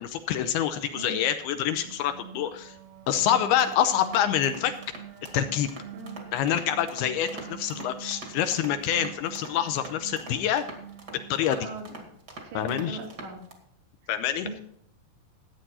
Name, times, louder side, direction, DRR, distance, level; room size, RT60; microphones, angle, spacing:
voice 1, 0.0-2.8 3.1-4.7 5.3-5.7 6.3-10.7 11.1-11.7 12.5-13.0 14.1-14.5, left 10 dB, 80° left, 8 dB, 2.4 m, -26 dB
voice 2, 0.9-1.2 5.9-6.2 7.4-7.5 11.6-12.0 12.4-13.5 14.4-14.6, right 3 dB, 85° right, -1 dB, 4.9 m, -39 dB
sound 1, 1.4-11.9, right 8 dB, 65° right, 2.5 m, -45 dB
sound 2, 3.2-13.5, right 2 dB, 40° right, 1.4 m, -45 dB
13.5 x 8.9 x 4.2 m, 0.69 s
omnidirectional pair, 4.9 m